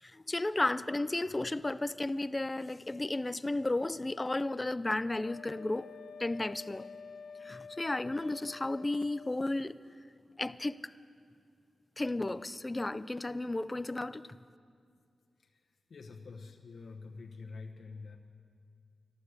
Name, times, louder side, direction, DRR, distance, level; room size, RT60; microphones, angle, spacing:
voice 1, 0.0-5.9 6.2-6.9 7.4-9.8 10.4-10.8 12.0-14.4, left 2 dB, 20° left, 15 dB, 0.4 m, -33 dB
Wind instrument woodwind instrument, 5.2-9.5, left 5 dB, 85° left, 0.4 m, -49 dB
voice 2, 15.9-18.2, left 4 dB, 65° left, 1 dB, 1.1 m, -46 dB
13.0 x 12.0 x 8.2 m, 2.2 s
wide cardioid pair, 95°, 0 cm